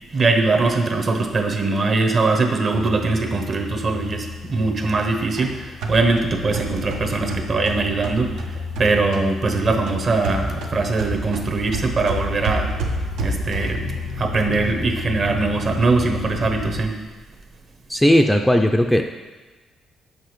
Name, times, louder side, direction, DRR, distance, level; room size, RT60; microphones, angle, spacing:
voice 1, 0.1-12.7 13.2-17.0, right 3 dB, 45° right, 4 dB, 0.8 m, -21 dB
sound 1, 2.7-16.8, left 4 dB, 65° left, 0.5 m, -32 dB
sound 2, 5.0-9.3 9.5-13.9, right 2 dB, 90° right, 0.7 m, -29 dB
voice 2, 17.9-19.0, equal, 5° left, 4 dB, 0.3 m, -16 dB
6.7 x 5.1 x 3.1 m, 1.3 s
cardioid pair, 90°, 0 cm